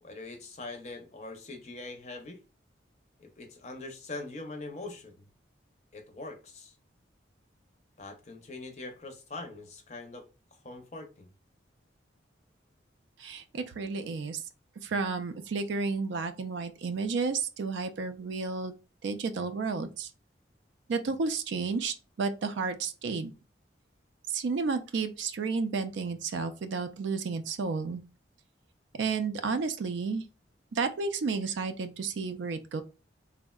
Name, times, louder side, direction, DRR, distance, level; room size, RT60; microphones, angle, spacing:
voice 1, 0.0-2.4 3.2-5.2 5.9-6.7 8.0-10.2 10.5-11.3, left 2 dB, 35° left, 0.5 m, -42 dB
voice 2, 13.2-14.4 14.8-18.7 19.0-20.1 20.9-23.3 24.3-28.0 29.0-30.2 30.7-32.8, right 4 dB, 75° right, 0.4 m, -32 dB
3.5 x 2.0 x 2.2 m
head